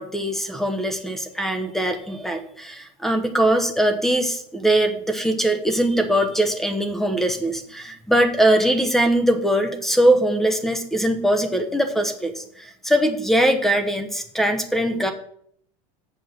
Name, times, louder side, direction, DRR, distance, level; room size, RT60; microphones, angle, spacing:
voice 1, 0.0-15.1, right 1 dB, ahead, 7 dB, 1.0 m, -21 dB
7.6 x 6.1 x 6.8 m, 0.67 s
supercardioid pair, 150°, 16 cm